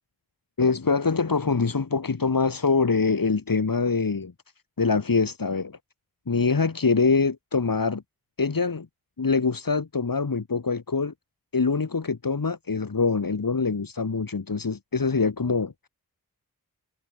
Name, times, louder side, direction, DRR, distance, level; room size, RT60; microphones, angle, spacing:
voice 1, 0.6-4.3 4.8-5.8 6.3-8.0 8.4-8.9 9.2-11.1 11.5-15.7, left 4 dB, 65° left, 6.3 m, -24 dB
cardioid pair, 50°, 36 cm